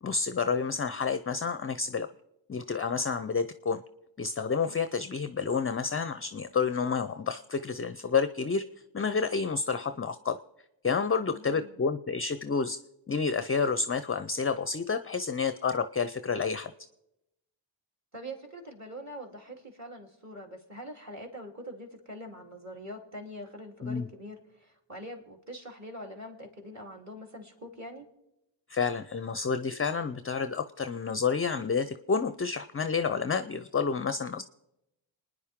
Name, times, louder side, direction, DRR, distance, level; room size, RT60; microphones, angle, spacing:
voice 1, 0.0-2.1 2.5-3.8 4.2-8.6 8.9-10.4 10.8-12.8 13.1-16.7 23.8-24.0 28.7-34.4, left 5 dB, 25° left, 11 dB, 0.6 m, -29 dB
voice 2, 11.3-11.8 18.1-28.1, equal, 30° right, 2 dB, 3.3 m, -44 dB
27.0 x 9.9 x 3.7 m, 0.89 s
supercardioid pair, 45°, 50 cm